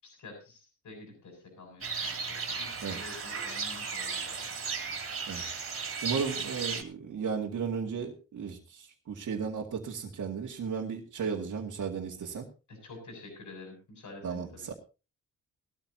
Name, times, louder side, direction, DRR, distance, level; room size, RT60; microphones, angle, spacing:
voice 1, 0.0-4.9 12.7-14.7, left 3 dB, 70° left, 3 dB, 6.9 m, -49 dB
sound 1, 1.8-6.8, right 5 dB, 45° right, 2.8 m, -35 dB
voice 2, 6.0-12.5 14.2-14.7, right 6 dB, 75° right, -3 dB, 2.3 m, -35 dB
19.0 x 13.5 x 2.9 m, 0.32 s
wide cardioid pair, 115°, 31 cm